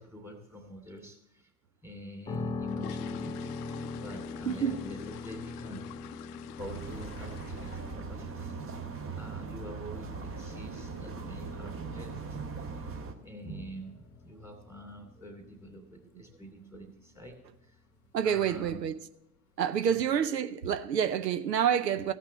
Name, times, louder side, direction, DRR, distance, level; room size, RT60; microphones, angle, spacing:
voice 1, 0.0-1.5 1.8-6.2 6.6-8.8 9.1-12.9 13.2-17.8 18.2-18.9 19.9-20.2, equal, 5° right, 2.6 m, -47 dB
sound 1, 2.3-8.2 8.5-8.8 9.1-9.2 9.6-9.7 10.1-10.3 10.6-10.7 11.3-11.4 11.6-11.8 12.3-12.6 12.9-13.0 13.4-13.6 13.9-14.0 14.4-14.5 15.2-15.5 15.8-16.1 16.5-16.6 17.0-17.1 17.9-18.0 18.4-18.9 19.4-19.5, left 14 dB, 70° left, 0.6 m, -49 dB
sound 2, 2.3-18.1, left 3 dB, 10° left, 0.4 m, -43 dB
voice 2, 4.4-4.8 16.6-16.9 18.1-19.0 19.6-22.1, right 8 dB, 85° right, 0.6 m, -28 dB
sound 3, 6.6-13.1, right 5 dB, 25° right, 1.2 m, -40 dB
15.0 x 5.8 x 8.4 m
hypercardioid pair, 85°, 48 cm